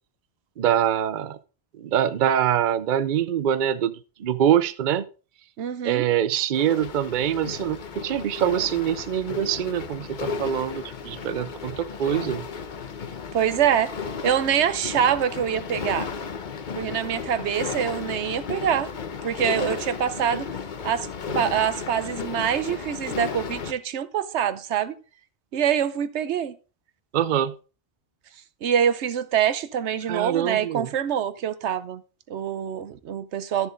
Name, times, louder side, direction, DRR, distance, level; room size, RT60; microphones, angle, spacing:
voice 1, 0.6-1.4 1.8-5.0 5.8-12.5 27.1-27.5 30.1-30.9, right 10 dB, 55° right, 0.7 m, -24 dB
voice 2, 5.6-6.1 13.3-13.9 14.2-16.1 16.8-18.9 19.2-20.5 20.8-21.1 21.3-25.0 25.5-26.5 28.6-32.0 32.3-33.7, right 9 dB, 90° right, 1.0 m, -25 dB
sound 1, 6.5-23.7, left 6 dB, 50° left, 0.9 m, -34 dB
12.5 x 7.0 x 3.9 m
omnidirectional pair, 1.1 m